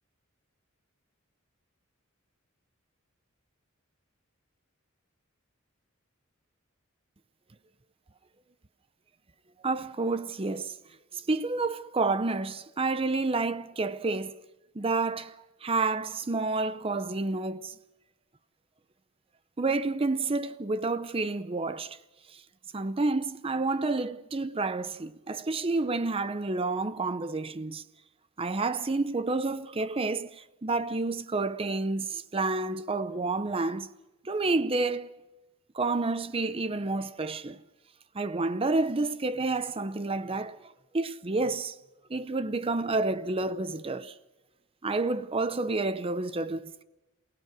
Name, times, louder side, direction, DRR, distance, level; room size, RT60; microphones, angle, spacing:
voice 1, 9.6-10.7 11.1-14.3 14.8-15.4 15.6-17.7 19.6-22.0 22.7-27.8 28.4-33.9 34.2-35.1 35.7-37.6 38.1-40.6 40.9-41.7 42.1-44.1 44.8-46.8, right 3 dB, 25° right, 0.6 m, -29 dB
28.0 x 17.5 x 6.1 m
head